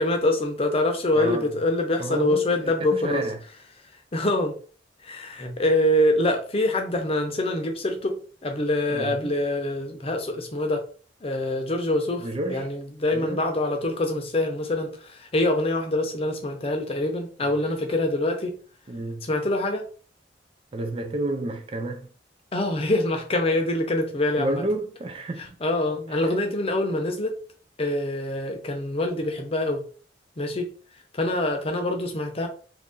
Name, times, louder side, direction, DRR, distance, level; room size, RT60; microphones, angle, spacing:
voice 1, 0.0-3.2 4.1-4.6 5.0-10.8 11.2-18.6 19.2-19.8 22.5-24.6 25.6-27.3 27.8-29.8 30.4-30.7 31.1-32.5, left 1 dB, 35° left, 0.6 m, -25 dB
voice 2, 1.1-1.5 2.0-3.4 8.9-9.3 12.2-12.7 13.1-13.4 18.9-19.3 20.7-22.1 24.4-25.6, right 1 dB, 30° right, 0.4 m, -30 dB
2.8 x 2.6 x 3.7 m
head